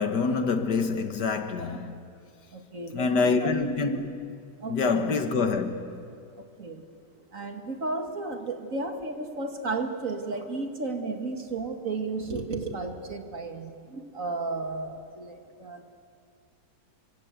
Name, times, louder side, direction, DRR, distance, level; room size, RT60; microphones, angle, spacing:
voice 1, 0.0-2.0 2.9-4.4 4.7-6.0, left 4 dB, 70° left, 2.0 m, -26 dB
voice 2, 2.5-3.5 4.6-5.2 6.4-6.9 7.3-15.9, right 3 dB, 50° right, 2.5 m, -33 dB
28.5 x 26.0 x 8.1 m
omnidirectional pair, 1.9 m